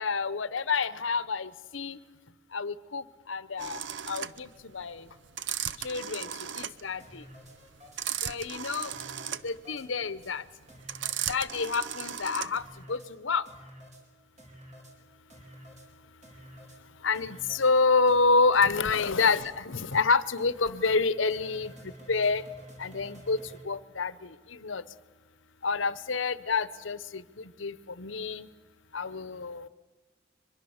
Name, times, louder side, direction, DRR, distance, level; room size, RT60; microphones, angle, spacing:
voice 1, 0.0-2.0 2.5-3.8 4.1-4.5 4.7-5.0 5.8-6.3 6.6-7.2 8.2-8.9 9.4-10.4 11.3-12.6 12.9-13.4 17.0-21.7 22.1-22.4 22.8-23.4 23.6-24.3 24.6-24.8 25.6-28.5 28.9-29.7, left 4 dB, 85° left, 16 dB, 0.9 m, -28 dB
sound 1, 3.6-12.8, right 9 dB, 70° right, 0.7 m, -36 dB
sound 2, 7.0-8.0 8.4-8.5 8.8-9.9 10.2-10.3 10.7-11.7 12.1-12.2 12.5-13.1 13.5-14.0 14.4-14.9 15.3-15.9 16.2-16.8 17.1-17.7 18.1-18.2 18.5-18.7 19.0-19.1 19.5-19.6 19.9-20.0 20.4-20.5 20.8-21.0 21.3-23.6, equal, 40° right, 4.7 m, -50 dB
23.5 x 22.0 x 7.2 m, 1.3 s
head